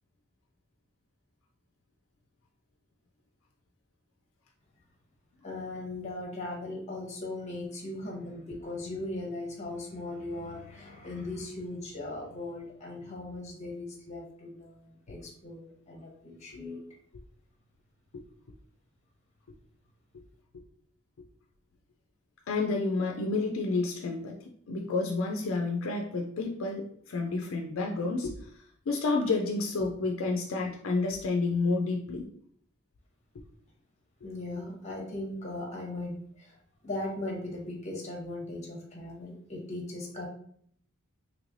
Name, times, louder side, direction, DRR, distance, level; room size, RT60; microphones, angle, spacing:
voice 1, 5.4-16.8 34.2-36.6 36.8-40.3, left 2 dB, 35° left, -1 dB, 0.9 m, -38 dB
voice 2, 22.5-24.4 24.7-28.3 28.9-32.3, left 3 dB, 70° left, 2 dB, 0.4 m, -30 dB
3.1 x 3.1 x 2.5 m, 0.63 s
head